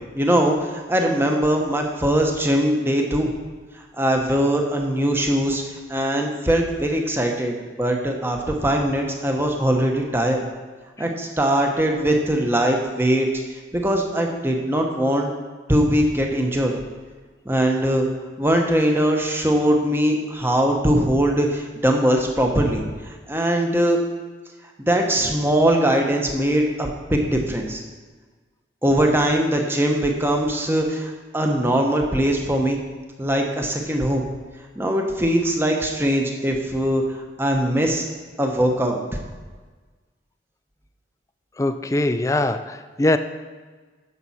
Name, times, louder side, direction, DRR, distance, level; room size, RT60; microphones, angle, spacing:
voice 1, 0.1-3.3 4.0-5.6 5.9-10.4 11.0-13.3 13.7-15.3 15.7-16.7 17.4-18.1 18.4-24.0 24.9-27.8 28.8-32.8 33.2-34.2 34.8-37.0 37.4-38.1 38.4-39.2, right 1 dB, 10° right, 2 dB, 0.9 m, -21 dB
voice 2, 41.6-43.2, left 1 dB, 15° left, 10 dB, 0.3 m, -22 dB
10.5 x 6.9 x 4.2 m, 1.4 s
head